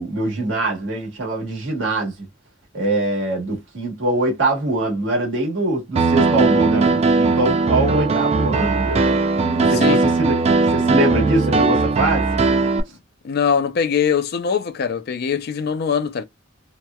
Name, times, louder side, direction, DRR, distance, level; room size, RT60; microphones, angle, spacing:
voice 1, 0.0-2.1 2.7-9.0 9.7-10.4 10.7-12.3, right 1 dB, 75° right, 1.3 m, -23 dB
Piano, 6.0-12.8, right 3 dB, 35° right, 0.3 m, -18 dB
voice 2, 9.7-10.0 13.2-16.2, left 7 dB, 55° left, 0.4 m, -22 dB
2.9 x 2.1 x 2.2 m
head